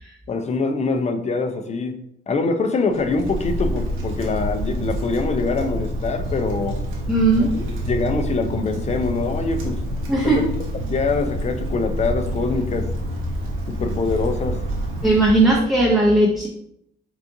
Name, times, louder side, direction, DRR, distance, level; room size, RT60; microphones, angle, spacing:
voice 1, 0.3-2.0 2.3-6.8 7.9-9.8 10.2-10.4 10.9-12.9 13.7-14.6, left 3 dB, 35° left, 8 dB, 0.5 m, -24 dB
Wind, 2.9-15.7, equal, 90° right, 1.0 m, -27 dB
voice 2, 7.1-7.7 10.1-10.5 15.0-16.5, right 2 dB, ahead, -4 dB, 0.7 m, -18 dB
5.5 x 2.5 x 2.6 m, 0.74 s
cardioid pair, 90°, 20 cm